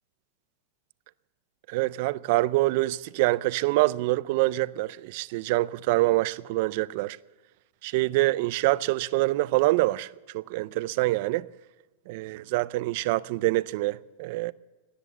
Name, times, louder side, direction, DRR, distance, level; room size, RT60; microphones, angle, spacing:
voice 1, 1.7-7.2 7.8-11.5 12.1-14.5, right 19 dB, 60° right, 0.5 m, -25 dB
18.0 x 10.0 x 7.1 m
hypercardioid pair, 130°, 0 cm